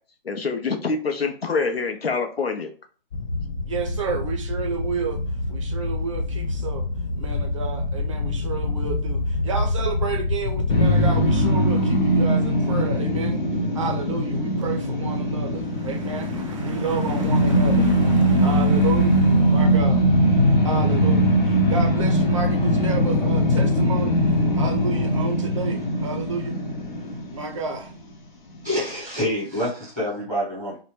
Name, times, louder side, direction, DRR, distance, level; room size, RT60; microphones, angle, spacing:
voice 1, 0.2-2.7, left 4 dB, 90° left, 5 dB, 0.7 m, -25 dB
sound 1, 3.1-11.5, left 2 dB, 35° left, 0.4 m, -27 dB
voice 2, 3.6-5.2 5.5-6.9 7.2-13.4 13.7-20.0 20.6-26.6 27.3-27.9, right 5 dB, 35° right, 3 dB, 0.5 m, -31 dB
sound 2, 10.7-27.9, equal, 55° left, 0.8 m, -21 dB
voice 3, 28.6-30.8, equal, 5° left, -6 dB, 1.0 m, -27 dB
2.8 x 2.2 x 3.0 m, 0.41 s
figure-of-eight pair, 140°, 29 cm